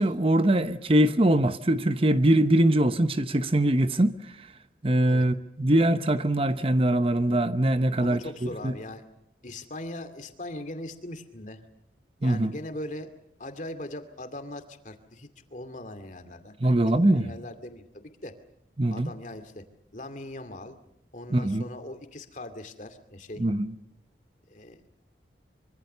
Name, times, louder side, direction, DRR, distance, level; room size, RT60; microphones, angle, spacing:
voice 1, 0.0-4.1 4.8-8.7 12.2-12.5 16.6-17.3 18.8-19.1 21.3-21.6 23.4-23.7, right 1 dB, 30° right, 0.9 m, -22 dB
voice 2, 8.0-9.0 9.4-11.6 12.2-13.1 13.4-18.3 18.9-19.6 19.9-20.8 21.1-23.4 24.5-24.8, left 1 dB, 45° left, 2.4 m, -40 dB
25.0 x 24.5 x 6.8 m
head